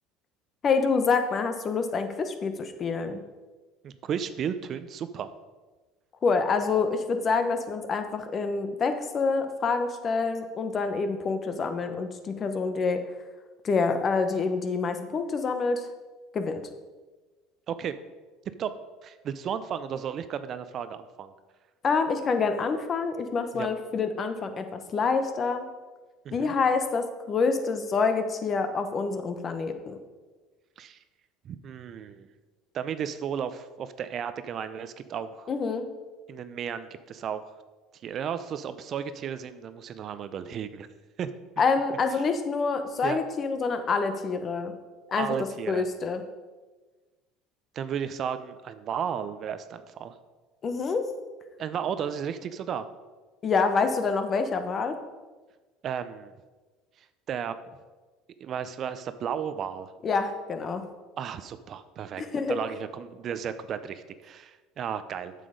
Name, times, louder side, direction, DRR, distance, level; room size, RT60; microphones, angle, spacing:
voice 1, 0.6-3.2 6.2-13.0 13.6-15.9 16.3-16.6 21.8-25.7 26.3-30.0 35.5-35.9 41.6-44.7 45.1-45.3 45.7-46.2 50.6-51.1 53.4-55.0 60.0-60.8 62.2-62.6, left 4 dB, 40° left, 8 dB, 1.0 m, -27 dB
voice 2, 3.8-5.3 17.7-18.0 18.6-18.7 19.0-21.3 23.5-23.7 26.2-26.5 30.8-31.0 31.4-32.3 32.7-35.5 36.3-37.4 38.0-40.9 41.2-41.3 43.0-43.2 45.2-45.9 47.7-50.2 51.6-52.9 55.8-56.3 57.3-57.6 58.4-59.9 61.2-62.2 62.5-65.3, right 8 dB, 50° right, 12 dB, 0.6 m, -34 dB
7.4 x 6.8 x 5.1 m, 1.3 s
supercardioid pair, 85°, 0 cm